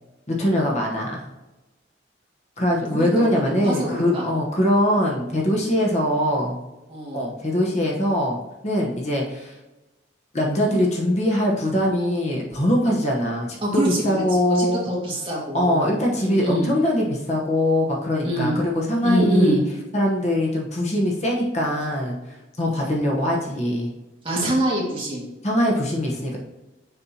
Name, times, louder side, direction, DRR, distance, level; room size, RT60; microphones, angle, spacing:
voice 1, 0.3-1.2 2.6-6.6 7.1-8.4 8.6-9.5 10.3-14.8 15.5-19.6 19.9-23.9 25.4-26.4, left 1 dB, 35° left, -2 dB, 1.0 m, -22 dB
voice 2, 2.9-4.2 6.9-7.3 13.6-14.2 14.5-15.9 16.2-16.7 18.2-18.6 19.0-19.6 24.2-25.2, equal, 25° right, -5 dB, 2.1 m, -25 dB
6.9 x 5.4 x 2.8 m, 1.1 s
head